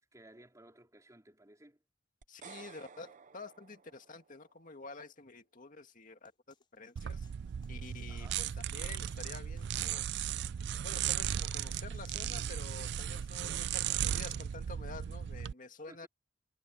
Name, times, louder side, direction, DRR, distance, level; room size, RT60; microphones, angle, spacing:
voice 1, 0.1-1.8 8.1-8.4 15.9-16.1, right 1 dB, 15° right, 4.4 m, -57 dB
sound 1, 2.2-4.5, right 6 dB, 40° right, 0.8 m, -54 dB
voice 2, 2.3-6.3 6.7-7.3 7.7-10.1 10.8-16.1, left 3 dB, 45° left, 2.1 m, -49 dB
sound 2, 6.2-14.1, left 5 dB, 25° left, 4.3 m, -70 dB
sound 3, 7.0-15.5, right 9 dB, 60° right, 0.3 m, -36 dB
head